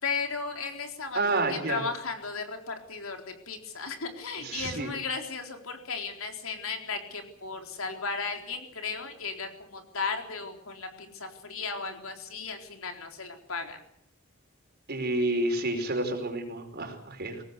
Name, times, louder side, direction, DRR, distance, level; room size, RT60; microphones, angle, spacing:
voice 1, 0.0-13.8, left 4 dB, 70° left, 4 dB, 4.0 m, -35 dB
voice 2, 1.1-1.8 4.4-4.9 14.9-17.4, right 2 dB, 50° right, 5 dB, 5.0 m, -29 dB
22.5 x 18.5 x 8.3 m, 0.69 s
head